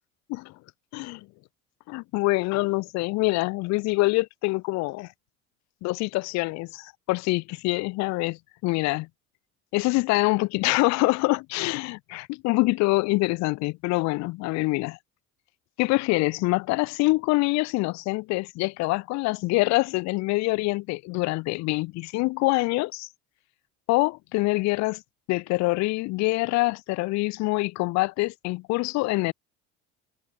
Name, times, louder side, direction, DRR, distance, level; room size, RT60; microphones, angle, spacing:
voice 1, 0.9-1.3 1.9-5.1 5.8-9.1 9.7-15.0 15.8-23.1 23.9-25.0 25.3-29.3, left 23 dB, 65° left, 0.6 m, -25 dB
cardioid pair, 125°, 30 cm